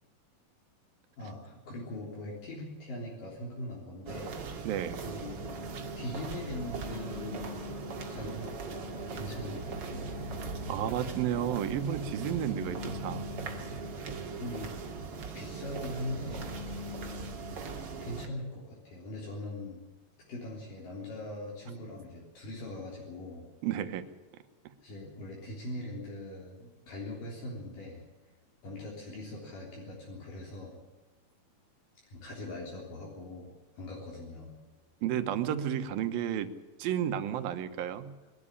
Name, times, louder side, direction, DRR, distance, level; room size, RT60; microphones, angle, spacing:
voice 1, 1.2-4.4 5.0-5.6 6.0-7.6 8.1-8.8 9.1-10.1 14.4-14.7 15.4-16.5 17.7-19.8 20.3-23.5 24.8-28.0 28.6-30.8 32.1-33.5 33.8-34.6, left 1 dB, 70° left, -3 dB, 5.2 m, -41 dB
sound 1, 4.1-18.3, right 3 dB, 45° right, 2.5 m, -39 dB
voice 2, 4.6-5.0 10.7-13.3 23.6-24.0 35.0-36.5 36.8-38.1, right 10 dB, 90° right, 10 dB, 2.9 m, -32 dB
21.5 x 12.5 x 10.0 m, 1.2 s
omnidirectional pair, 4.1 m